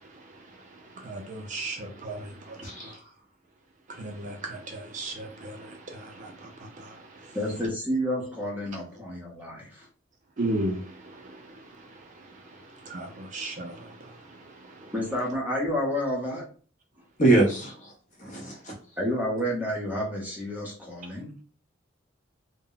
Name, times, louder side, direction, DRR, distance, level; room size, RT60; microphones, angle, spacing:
voice 1, 0.0-3.0 3.9-7.4 10.4-14.9, right 1 dB, 40° right, 0.4 m, -37 dB
voice 2, 2.6-2.9 17.2-17.9 18.2-18.7, right 2 dB, 40° left, 0.8 m, -23 dB
voice 3, 7.3-9.9 14.9-16.5 19.0-21.3, equal, 10° right, 0.7 m, -30 dB
2.1 x 2.0 x 3.7 m
head